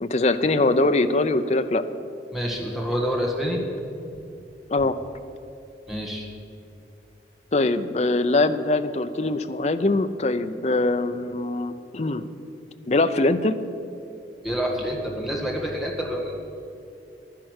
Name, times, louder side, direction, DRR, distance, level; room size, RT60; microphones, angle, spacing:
voice 1, 0.0-1.8 4.7-5.0 7.5-12.3 12.9-13.6, left 2 dB, 40° left, 10 dB, 0.5 m, -22 dB
voice 2, 2.3-3.6 5.9-6.3 14.4-16.3, equal, ahead, -2 dB, 1.6 m, -27 dB
11.5 x 10.5 x 6.4 m, 2.8 s
head